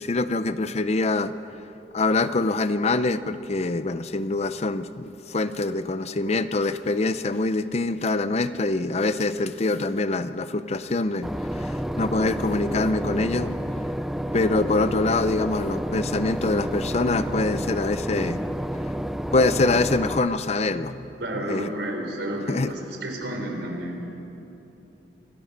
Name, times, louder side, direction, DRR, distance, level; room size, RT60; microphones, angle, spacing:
voice 1, 0.0-1.3 1.9-13.6 14.3-18.6 19.3-21.1 21.3-21.7 22.5-22.7, left 2 dB, 40° left, 12 dB, 0.6 m, -24 dB
Boat Water vehicle / Engine, 11.2-20.2, equal, ahead, 0.5 m, -30 dB
voice 2, 21.2-24.0, right 1 dB, 90° right, 2 dB, 3.9 m, -31 dB
26.0 x 17.0 x 6.7 m, 3.0 s
head